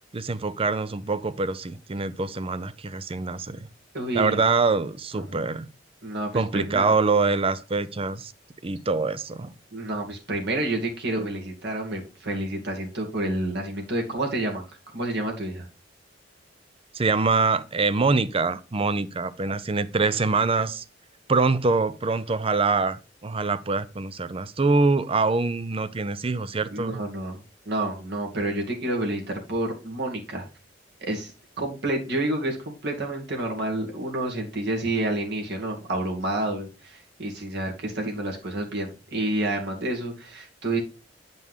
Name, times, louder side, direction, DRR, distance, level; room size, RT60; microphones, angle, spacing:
voice 1, 0.1-3.6 4.1-5.7 6.3-8.3 8.6-9.5 16.9-20.8 21.3-27.0, right 4 dB, 30° right, 0.6 m, -24 dB
voice 2, 3.9-4.4 5.1-5.5 6.0-7.0 9.7-14.6 14.9-15.7 26.7-30.5 31.0-31.3 31.6-40.8, right 1 dB, 65° right, 2.4 m, -29 dB
9.5 x 5.3 x 3.6 m
head